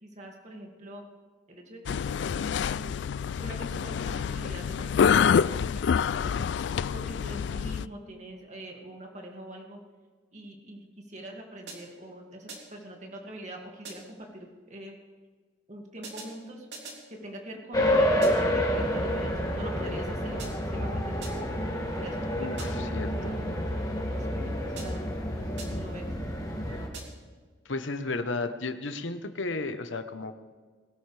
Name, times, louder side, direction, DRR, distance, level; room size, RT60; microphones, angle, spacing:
voice 1, 0.0-1.1 1.5-2.0 2.7-3.0 3.4-5.8 6.2-6.4 6.9-9.8 10.3-15.0 15.7-16.7 17.1-21.3 22.0-22.9 23.1-23.4 24.1-25.0 25.3-26.1, right 1 dB, 40° right, 1 dB, 2.4 m, -43 dB
sound 1, 1.9-7.9, left 7 dB, 65° left, 0.3 m, -27 dB
sound 2, 11.7-12.1 12.5-12.9 13.8-14.3 16.0-17.1 18.2-18.6 20.4-20.8 21.2-21.6 22.6-23.0 24.8-25.2 25.6-26.0 26.9-27.4, right 3 dB, 60° right, 3.1 m, -45 dB
sound 3, 17.7-26.9, equal, 20° left, 2.0 m, -29 dB
voice 2, 22.4-23.4 27.6-30.3, left 3 dB, 80° left, 8 dB, 1.1 m, -33 dB
21.5 x 13.0 x 3.4 m, 1.5 s
head